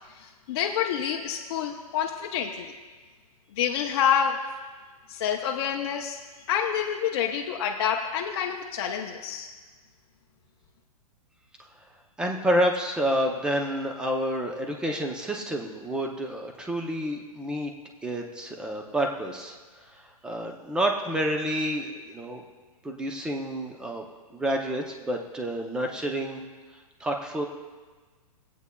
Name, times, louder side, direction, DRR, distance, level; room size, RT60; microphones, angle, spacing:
voice 1, 0.1-2.7 3.5-4.4 5.1-6.2 6.5-9.5, left 8 dB, 45° left, 1 dB, 0.6 m, -28 dB
voice 2, 12.2-17.7 18.0-22.4 22.8-24.0 24.3-26.4 27.0-27.5, equal, 5° right, 2 dB, 0.5 m, -29 dB
19.0 x 8.3 x 2.2 m, 1.4 s
hypercardioid pair, 155°, 19 cm